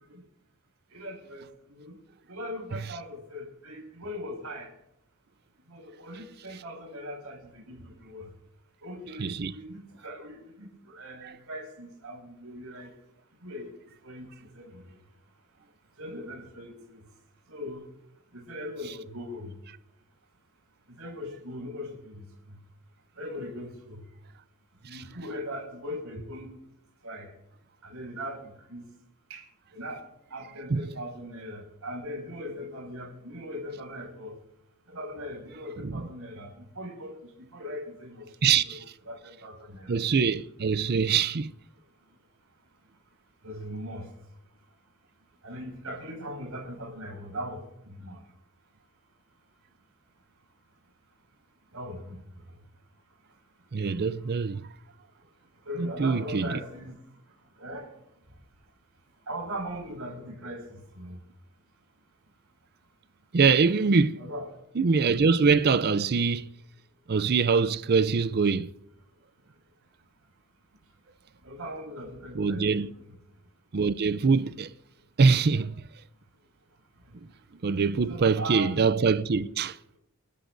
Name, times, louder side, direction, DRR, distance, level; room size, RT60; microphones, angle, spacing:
voice 1, 0.9-1.9 2.3-4.7 5.7-8.3 8.8-12.9 13.4-13.7 14.0-14.3 14.5-14.8 16.0-16.7 17.5-17.9 18.3-19.5 20.9-22.2 23.2-24.0 24.8-26.5 27.0-27.3 27.8-28.9 29.3-29.4 29.7-30.0 30.3-34.3 34.9-37.2 37.5-38.8 39.1-40.0 43.4-44.1 45.4-48.2 51.7-52.2 55.6-57.0 57.6-57.9 59.3-61.2 64.2-64.5 71.4-73.1 78.1-78.8, equal, 85° right, 5.9 m, -39 dB
voice 2, 9.2-9.5 11.2-11.3 24.9-25.0 30.7-30.9 35.8-36.1 38.4-38.8 39.9-41.5 53.7-54.7 55.8-56.6 63.3-64.2 64.8-66.5 67.1-68.7 72.3-72.9 73.7-74.7 75.2-75.8 77.6-79.8, right 5 dB, 45° right, 0.5 m, -24 dB
29.0 x 13.0 x 2.7 m
head